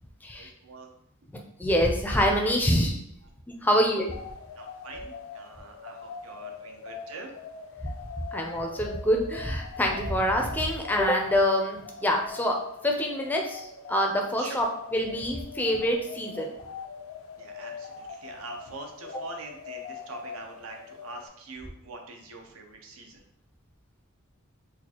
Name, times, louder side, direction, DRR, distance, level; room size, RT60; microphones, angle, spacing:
voice 1, 0.4-0.9 4.6-7.3 14.4-14.6 17.4-23.2, right 3 dB, 75° right, 3 dB, 0.6 m, -44 dB
voice 2, 1.6-3.0 3.6-4.1 8.3-12.6 12.8-14.7 14.9-16.5, equal, 10° left, 1 dB, 0.4 m, -25 dB
sound 1, 4.0-21.3, left 5 dB, 70° left, 0.4 m, -42 dB
4.2 x 2.4 x 2.8 m, 0.77 s
head